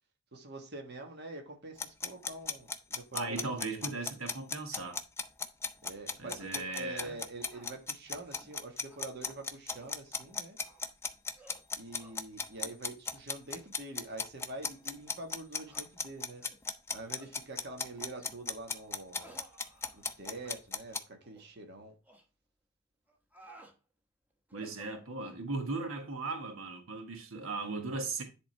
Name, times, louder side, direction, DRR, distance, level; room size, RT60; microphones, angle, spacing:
voice 1, 0.3-3.9 5.8-10.6 11.8-16.4 16.9-19.4 19.9-21.9, right 2 dB, 50° right, 1.4 m, -45 dB
sound 1, 1.8-21.0, left 4 dB, 10° left, 0.6 m, -36 dB
voice 2, 3.1-5.0 6.2-7.2 24.5-28.2, right 3 dB, 80° right, 1.4 m, -37 dB
sound 2, 6.4-6.6 7.0-7.2 7.5-7.7 8.1-8.5 8.9-9.0 9.5-10.0 10.6-10.9 11.3-11.6 12.0-12.2 12.6-12.8 13.4-13.6 14.0-14.2 14.8-14.9 15.7-15.9 16.4-16.6 17.2-17.4 18.1-18.4 19.2-20.2 20.4-20.6 21.2-21.5 22.0-22.2 23.1-23.8 24.5-25.4, right 1 dB, 10° right, 1.1 m, -57 dB
10.5 x 3.7 x 4.5 m
head